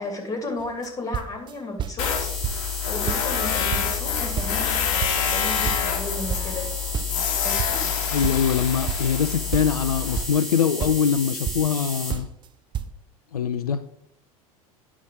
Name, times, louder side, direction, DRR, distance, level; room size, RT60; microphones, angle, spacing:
voice 1, 0.0-2.3 2.6-6.7 7.4-7.8, left 2 dB, 20° left, 4 dB, 2.1 m, -34 dB
sound 1, 0.6-0.9 1.1-2.2 2.4-2.8 3.1-4.7 5.0-8.0 8.2-10.5 10.8-11.8 12.1-12.5 12.7-12.9, right 9 dB, 25° right, 0.5 m, -31 dB
Tools, 2.0-10.2, left 8 dB, 60° left, 1.0 m, -27 dB
sound 2, 2.0-12.1, left 1 dB, ahead, 2.3 m, -34 dB
voice 2, 8.1-12.3 13.3-13.8, left 7 dB, 80° left, 11 dB, 0.4 m, -23 dB
9.8 x 5.9 x 3.6 m, 0.73 s
figure-of-eight pair, 75°, 19 cm